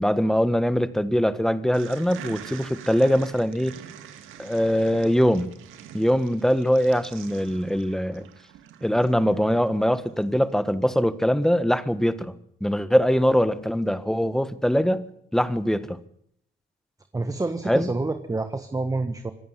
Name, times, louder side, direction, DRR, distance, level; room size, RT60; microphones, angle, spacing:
voice 1, 0.0-3.8 4.4-5.5 5.9-8.3 8.8-12.3 12.6-15.1 15.3-16.0 17.7-17.9, equal, ahead, 13 dB, 1.5 m, -22 dB
sound 1, 1.7-10.3, right 10 dB, 90° right, 2.1 m, -45 dB
voice 2, 17.1-19.3, right 2 dB, 15° right, 9 dB, 1.4 m, -28 dB
26.0 x 10.5 x 9.9 m, 0.69 s
cardioid pair, 90°, 20 cm